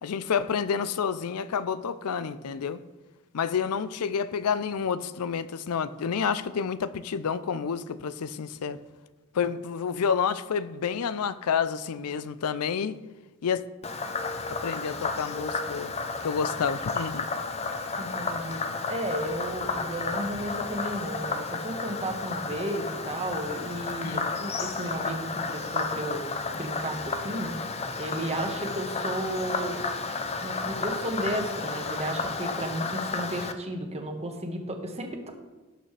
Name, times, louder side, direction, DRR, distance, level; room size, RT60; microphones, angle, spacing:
voice 1, 0.0-2.8 3.3-8.8 9.3-13.0 13.4-13.6 14.5-15.9 16.2-17.3 24.0-24.3, left 6 dB, 80° left, 0.5 m, -29 dB
Frog, 13.8-33.5, left 4 dB, 30° left, 0.6 m, -32 dB
voice 2, 18.0-26.3 26.5-27.6 28.0-29.8 30.4-35.3, right 1 dB, 30° right, 1.3 m, -33 dB
17.5 x 6.7 x 3.3 m
head